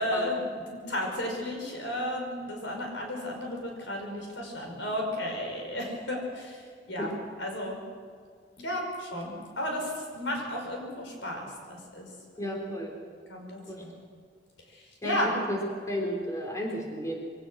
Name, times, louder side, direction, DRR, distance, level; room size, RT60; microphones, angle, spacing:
voice 1, 0.0-7.1 7.4-7.8 8.6-12.1 12.4-12.5 13.3-14.0 14.7-15.3, left 1 dB, 90° left, 1 dB, 5.5 m, -34 dB
voice 2, 12.4-12.9 13.4-13.8 15.0-15.6 15.9-17.2, equal, 20° left, 0 dB, 3.6 m, -33 dB
23.5 x 17.0 x 6.4 m, 2.1 s
head